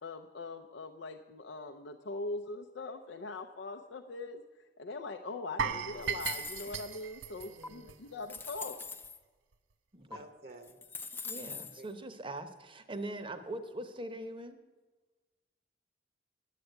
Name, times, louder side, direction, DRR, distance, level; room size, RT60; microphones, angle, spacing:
voice 1, 0.0-8.8, left 3 dB, 80° left, 4 dB, 0.6 m, -42 dB
sound 1, 5.6-8.6 8.9-9.1 9.5-9.6, right 6 dB, 90° right, 0.6 m, -37 dB
sound 2, 6.0-7.0 7.6-7.7 8.2-9.2 10.1-10.2 10.6-11.8, left 4 dB, 10° left, 0.5 m, -42 dB
voice 2, 7.5-8.2 10.1-10.8 11.8-11.9, right 1 dB, 55° right, 6 dB, 1.0 m, -52 dB
voice 3, 11.2-14.6, right 1 dB, 30° right, 9 dB, 0.8 m, -42 dB
9.9 x 8.3 x 8.0 m, 1.3 s
head